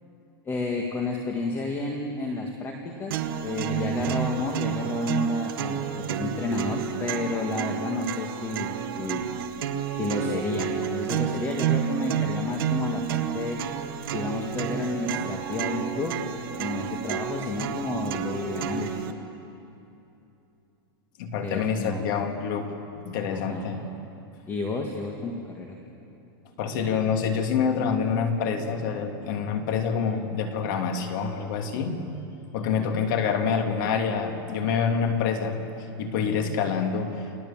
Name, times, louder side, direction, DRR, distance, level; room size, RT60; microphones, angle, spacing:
voice 1, 0.5-3.2 3.4-9.3 9.9-13.6 14.1-16.2 16.6-18.9 21.4-22.1 23.3-23.7 24.5-25.8 32.6-32.9, left 3 dB, 15° left, 2 dB, 1.8 m, -31 dB
sound 1, 3.1-19.1, right 9 dB, 65° right, 1.6 m, -30 dB
voice 2, 21.2-22.7 22.9-23.9 26.6-32.0 32.5-35.6 36.0-37.2, left 6 dB, 50° left, 4 dB, 2.6 m, -26 dB
29.5 x 19.0 x 7.4 m, 2.8 s
supercardioid pair, 165°, 13 cm